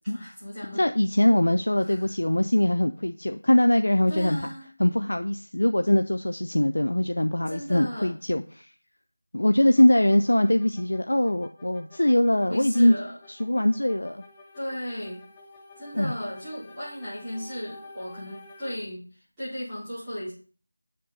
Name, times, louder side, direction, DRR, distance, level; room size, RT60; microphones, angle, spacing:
voice 1, 0.1-0.9 1.8-2.1 4.1-4.7 7.4-8.1 12.5-13.1 14.5-15.2 15.8-19.0 19.4-20.3, equal, 5° right, -19 dB, 4.2 m, -35 dB
voice 2, 0.7-4.4 4.8-8.7 9.3-12.9 13.3-14.2 15.9-16.1, left 1 dB, 85° left, 8 dB, 0.5 m, -22 dB
sound 1, 9.8-18.8, left 2 dB, 10° left, 0.7 m, -50 dB
7.5 x 7.2 x 4.0 m, 0.39 s
figure-of-eight pair, 175°, 0 cm